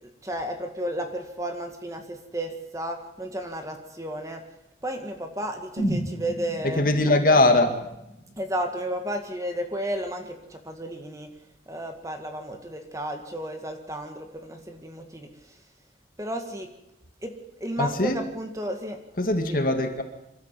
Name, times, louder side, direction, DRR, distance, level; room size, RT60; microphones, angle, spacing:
voice 1, 0.0-4.4 4.8-7.2 8.4-11.3 11.7-15.6 16.2-16.7 17.2-19.0 19.2-19.6, equal, 20° right, 5 dB, 2.0 m, -33 dB
sound 1, 5.8-9.7 10.0-10.1, right 1 dB, 50° right, 5.0 m, -34 dB
voice 2, 6.8-7.7 17.8-18.2 19.2-20.0, left 2 dB, 50° left, 5 dB, 2.1 m, -21 dB
27.0 x 12.5 x 7.6 m, 0.87 s
head